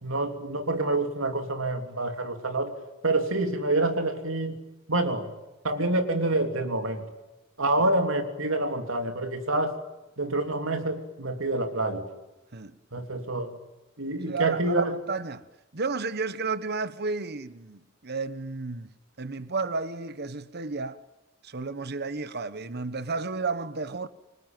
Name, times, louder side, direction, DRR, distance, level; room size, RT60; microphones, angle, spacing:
voice 1, 0.0-2.8 3.0-4.6 4.9-5.3 5.6-7.0 7.6-9.8 10.2-12.1 12.9-13.5 14.0-15.0, right 2 dB, 75° right, 3.4 m, -27 dB
voice 2, 14.3-15.5 15.7-21.0 21.4-24.1, right 4 dB, 50° right, 1.2 m, -32 dB
26.0 x 25.0 x 9.2 m
head